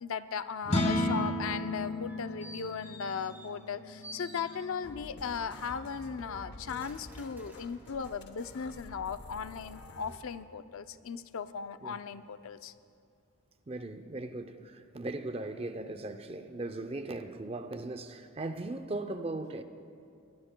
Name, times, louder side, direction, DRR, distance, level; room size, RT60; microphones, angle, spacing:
voice 1, 0.0-12.7, left 6 dB, 70° left, 0.5 m, -37 dB
sound 1, 0.6-7.0, left 1 dB, 35° left, 1.8 m, -35 dB
sound 2, 1.8-3.7 4.0-5.0 5.6-8.2 8.7-8.8, left 1 dB, 10° right, 1.9 m, -52 dB
sound 3, 4.8-10.2, left 2 dB, 50° left, 0.9 m, -49 dB
voice 2, 13.7-19.6, right 2 dB, 25° right, 0.5 m, -38 dB
22.5 x 20.5 x 2.2 m
head